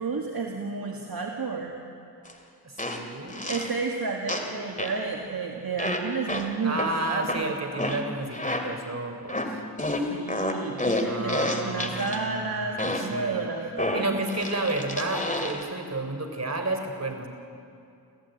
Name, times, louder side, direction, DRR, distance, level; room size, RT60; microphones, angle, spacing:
voice 1, 0.0-1.8 3.5-7.6 10.1-14.2, right 4 dB, 60° right, 1 dB, 1.9 m, -31 dB
sound 1, 2.3-2.4 2.8-3.8 4.3-5.1 5.8-8.9 9.3-12.2 12.8-13.3 13.8-15.7, left 1 dB, 20° left, 2.5 m, -30 dB
voice 2, 2.6-3.5 6.6-9.6 11.0-13.5 13.9-17.3, right 2 dB, 40° right, 5 dB, 3.9 m, -31 dB
29.0 x 15.0 x 9.1 m, 2.5 s
wide cardioid pair, 60°, 40 cm